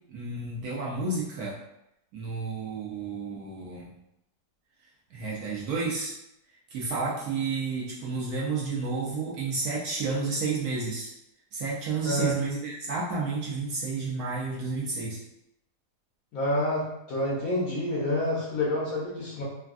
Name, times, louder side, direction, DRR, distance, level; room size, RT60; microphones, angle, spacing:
voice 1, 0.1-1.6 2.1-3.9 5.1-6.1 6.7-11.1 11.5-15.2, right 4 dB, 65° right, -5 dB, 1.0 m, -31 dB
voice 2, 16.3-19.4, left 1 dB, 65° left, -5 dB, 1.0 m, -28 dB
3.4 x 2.2 x 2.4 m, 0.85 s
omnidirectional pair, 1.9 m